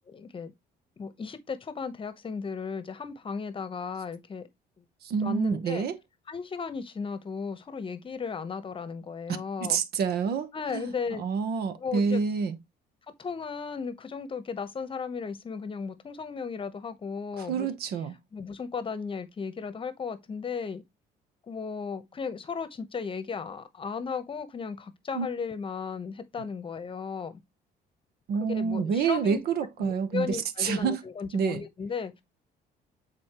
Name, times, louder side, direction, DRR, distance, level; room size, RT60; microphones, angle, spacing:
voice 1, 0.1-0.5 1.0-4.4 5.2-5.8 6.3-9.8 10.5-11.2 11.8-12.2 13.2-17.8 18.3-20.8 21.5-27.4 28.4-29.4 29.8-32.2, left 5 dB, 30° left, 1.0 m, -35 dB
voice 2, 5.0-6.0 9.6-10.8 11.2-12.6 17.4-18.2 25.1-25.3 28.3-31.0 31.3-31.6, right 6 dB, 70° right, 1.1 m, -28 dB
8.4 x 4.1 x 3.0 m
cardioid pair, 110°, 17 cm